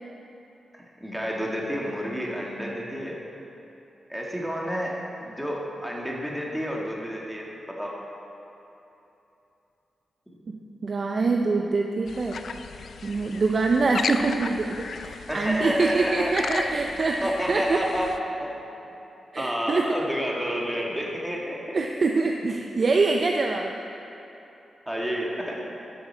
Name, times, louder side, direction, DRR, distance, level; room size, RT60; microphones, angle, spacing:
voice 1, 1.0-3.2 4.1-8.0 15.3-16.3 17.2-18.1 18.4-18.6 19.4-21.8 24.8-25.7, equal, 5° right, -2 dB, 1.7 m, -30 dB
voice 2, 10.5-12.4 13.0-17.8 19.3-19.9 21.7-23.7, right 3 dB, 50° right, 2 dB, 0.5 m, -25 dB
sound 1, 12.1-18.2, left 5 dB, 70° left, 0.4 m, -36 dB
12.5 x 6.6 x 4.3 m, 3.0 s
cardioid pair, 65°, 0 cm